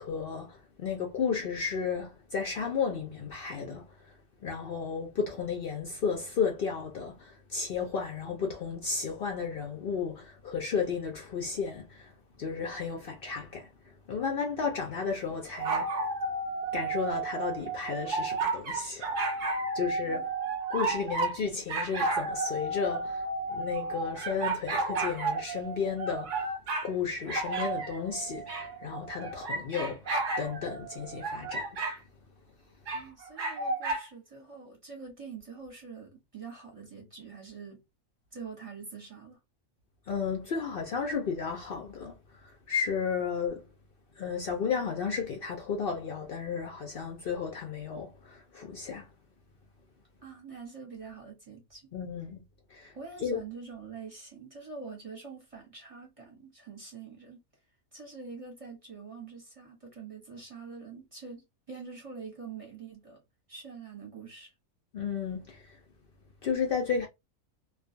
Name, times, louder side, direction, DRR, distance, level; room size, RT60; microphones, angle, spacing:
voice 1, 0.0-4.1 4.4-12.1 12.4-15.9 16.7-20.3 20.7-26.4 26.8-31.9 40.1-43.6 44.2-49.1 51.9-52.4 52.7-52.9 53.2-53.4 64.9-65.8 66.4-67.1, left 6 dB, 65° left, 0.5 m, -33 dB
sound 1, 15.5-21.4 21.7-26.9 27.3-32.0 32.9-34.0, right 3 dB, 60° right, 0.5 m, -32 dB
voice 2, 20.0-20.3 32.9-37.8 38.3-39.4 50.2-51.9 52.9-57.4 57.9-63.2 63.5-64.5, right 5 dB, 30° right, 0.8 m, -45 dB
2.4 x 2.3 x 2.5 m
omnidirectional pair, 1.5 m